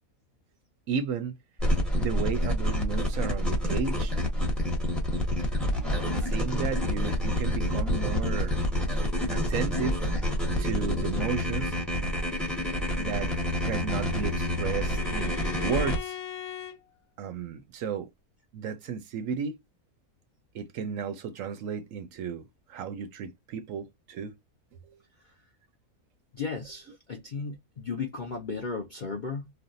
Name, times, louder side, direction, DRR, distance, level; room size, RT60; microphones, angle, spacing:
voice 1, 0.9-1.3 2.0-4.1 6.2-8.5 9.3-10.0 10.6-11.8 12.9-13.3 13.6-16.2 17.2-18.1 18.5-19.6 20.5-24.3 24.8-25.0, right 6 dB, 70° right, 0.9 m, -33 dB
sound 1, 1.6-16.0, left 1 dB, ahead, 0.8 m, -28 dB
Bowed string instrument, 13.2-16.8, left 10 dB, 80° left, 1.1 m, -41 dB
voice 2, 26.3-29.5, left 4 dB, 55° left, 0.5 m, -35 dB
3.4 x 2.3 x 2.5 m
omnidirectional pair, 1.6 m